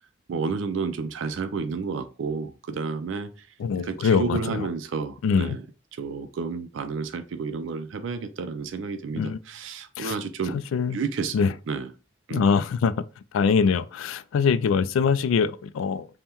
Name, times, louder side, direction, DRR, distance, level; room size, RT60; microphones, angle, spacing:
voice 1, 0.3-3.5 3.8-5.6 5.9-10.6 10.9-11.9 12.3-12.4, right 5 dB, 75° right, 0.4 m, -31 dB
voice 2, 3.6-4.7 5.2-5.6 9.2-9.4 10.0-10.2 10.7-11.0 11.3-11.5 12.3-12.9 13.3-16.1, left 6 dB, 85° left, 0.3 m, -23 dB
5.3 x 2.2 x 2.9 m
head